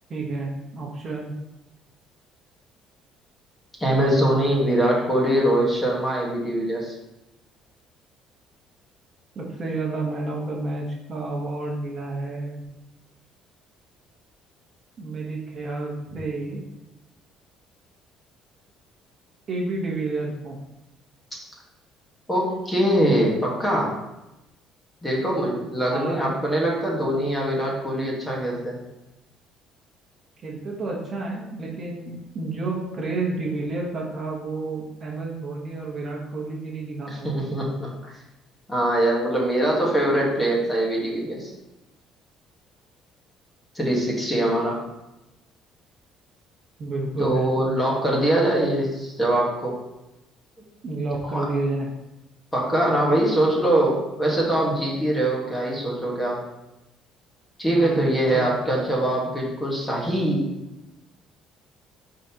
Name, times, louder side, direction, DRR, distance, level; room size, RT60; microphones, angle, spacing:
voice 1, 0.1-1.3 9.3-12.6 15.0-16.6 19.5-20.6 25.9-26.3 26.7-26.9 30.4-37.4 46.8-47.7 50.8-51.9 57.7-58.5, right 2 dB, 30° right, -2 dB, 1.0 m, -30 dB
voice 2, 3.8-6.9 22.3-23.9 25.0-28.8 37.1-38.1 38.7-41.5 43.7-44.8 47.2-49.8 51.2-51.4 52.5-56.4 57.6-60.5, right 1 dB, 10° left, -3 dB, 1.3 m, -23 dB
10.0 x 3.8 x 2.9 m, 0.95 s
cardioid pair, 175°, 0 cm